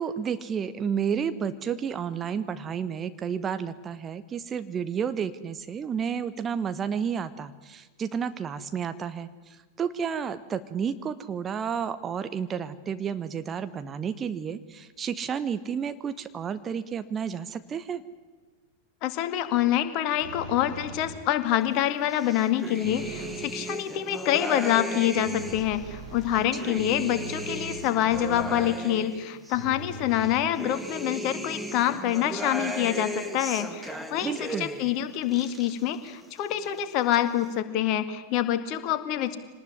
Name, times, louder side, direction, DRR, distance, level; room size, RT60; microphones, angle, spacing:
voice 1, 0.0-18.0 26.5-26.8 34.2-34.7, right 7 dB, 25° right, 11 dB, 1.1 m, -31 dB
voice 2, 19.0-39.4, left 11 dB, 40° left, 10 dB, 2.0 m, -26 dB
sound 1, 20.2-21.4 22.8-23.5 25.2-28.8 29.5-31.0, right 3 dB, 50° right, 7.0 m, -41 dB
sound 2, 22.1-25.7 26.2-29.6 30.1-35.0 35.2-36.1 36.4-37.2, right 1 dB, 5° right, 2.0 m, -36 dB
25.0 x 19.0 x 9.8 m, 1.3 s
figure-of-eight pair, 90°, 0 cm